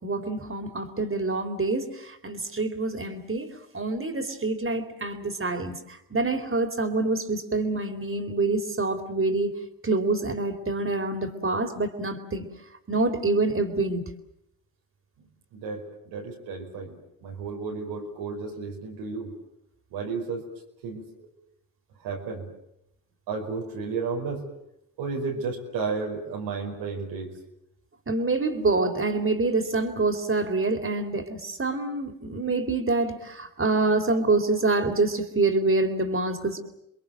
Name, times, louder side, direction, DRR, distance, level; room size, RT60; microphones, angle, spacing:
voice 1, 0.0-5.8 6.1-9.5 9.8-12.5 12.9-14.0 28.1-36.6, right 3 dB, 30° right, 7 dB, 3.8 m, -26 dB
voice 2, 15.5-16.9 17.2-19.3 19.9-20.5 20.8-21.3 22.0-22.5 23.3-24.4 25.0-27.3, right 4 dB, 90° right, 1 dB, 5.1 m, -32 dB
29.0 x 22.0 x 7.7 m, 0.81 s
supercardioid pair, 50°, 39 cm